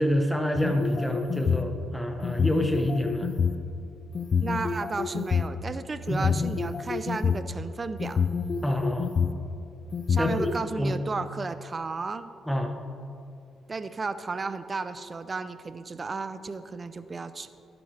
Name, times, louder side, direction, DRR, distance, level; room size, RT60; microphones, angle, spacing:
voice 1, 0.0-3.3 6.1-6.3 8.6-9.1 10.2-10.5 10.8-11.0 12.5-12.8, left 1 dB, 5° left, 4 dB, 1.1 m, -27 dB
sound 1, 0.6-1.7 2.2-3.5 4.1-5.4 6.1-7.5 8.0-9.4 9.9-10.5, left 6 dB, 45° left, 0.5 m, -27 dB
voice 2, 4.4-8.2 10.1-12.3 13.7-17.5, right 4 dB, 30° right, 12 dB, 0.5 m, -33 dB
11.0 x 10.0 x 3.4 m, 2.4 s
cardioid pair, 90°, 0 cm